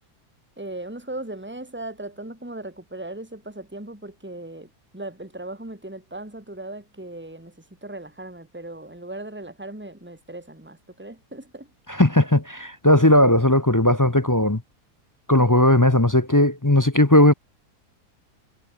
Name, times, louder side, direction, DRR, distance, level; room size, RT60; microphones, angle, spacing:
voice 1, 0.6-7.6 7.8-11.7, right 2 dB, 5° right, 3.5 m, -37 dB
voice 2, 11.9-14.6 15.3-17.3, left 1 dB, 15° left, 0.8 m, -17 dB
omnidirectional pair, 1.7 m